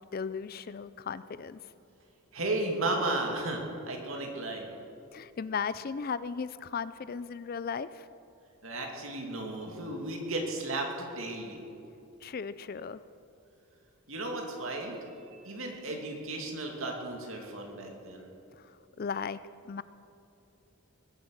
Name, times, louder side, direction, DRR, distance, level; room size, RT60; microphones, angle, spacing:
voice 1, 0.0-1.6 5.1-8.1 12.2-13.0 18.6-19.4 19.6-19.8, left 6 dB, 40° left, 15 dB, 0.4 m, -36 dB
voice 2, 2.3-4.7 8.6-11.6 14.1-15.0 15.3-18.3, right 2 dB, 65° right, 1 dB, 2.6 m, -34 dB
21.0 x 9.9 x 6.6 m, 2.8 s
head